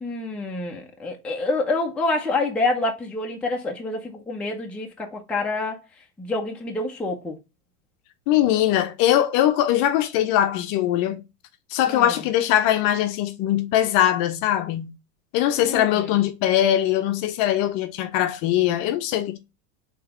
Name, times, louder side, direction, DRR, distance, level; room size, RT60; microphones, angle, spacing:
voice 1, 0.0-5.8 6.2-7.4 11.9-12.1 15.6-16.1, left 2 dB, ahead, 0.6 m, -27 dB
voice 2, 8.3-11.2 11.7-14.9 15.3-19.4, left 12 dB, 45° left, 0.7 m, -21 dB
3.8 x 3.5 x 2.8 m
hypercardioid pair, 120°, 46 cm